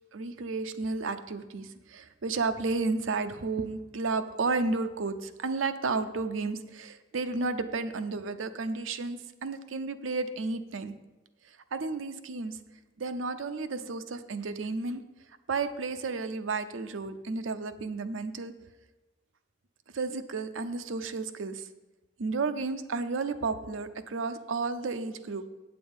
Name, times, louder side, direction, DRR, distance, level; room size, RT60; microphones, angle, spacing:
voice 1, 0.1-10.9 11.7-12.6 13.0-15.0 15.5-18.5 19.9-21.7 22.2-25.5, right 3 dB, 85° right, 9 dB, 0.6 m, -32 dB
8.7 x 6.8 x 5.4 m, 1.2 s
head